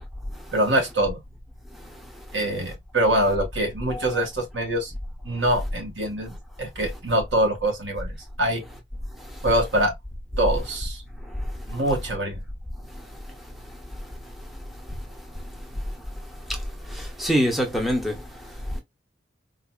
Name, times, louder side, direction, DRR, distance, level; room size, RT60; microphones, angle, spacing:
voice 1, 0.5-1.2 2.3-4.9 5.2-8.6 9.4-9.9 10.4-11.0 11.7-12.4, right 1 dB, 85° right, 1.7 m, -24 dB
voice 2, 16.9-18.2, equal, ahead, 0.9 m, -24 dB
4.0 x 2.7 x 2.3 m
head